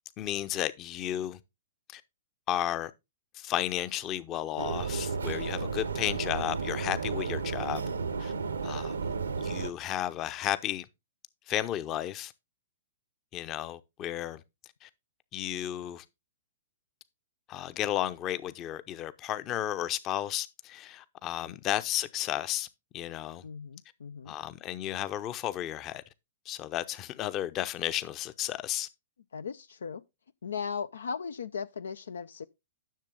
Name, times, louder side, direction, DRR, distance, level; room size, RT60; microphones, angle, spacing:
voice 1, 0.2-1.4 1.9-2.0 2.5-2.9 3.3-7.8 8.2-8.3 8.6-9.0 9.3-10.9 11.5-12.3 13.3-14.4 14.8-14.9 15.3-16.0 17.5-22.7 22.9-23.4 24.3-26.0 26.5-28.9, left 12 dB, 30° left, 0.7 m, -33 dB
sound 1, 4.6-9.7, right 5 dB, 75° right, 0.8 m, -33 dB
voice 2, 23.4-24.3 29.3-30.0 30.4-32.5, left 6 dB, 70° left, 0.4 m, -37 dB
10.5 x 6.7 x 3.7 m
figure-of-eight pair, 110°, 0 cm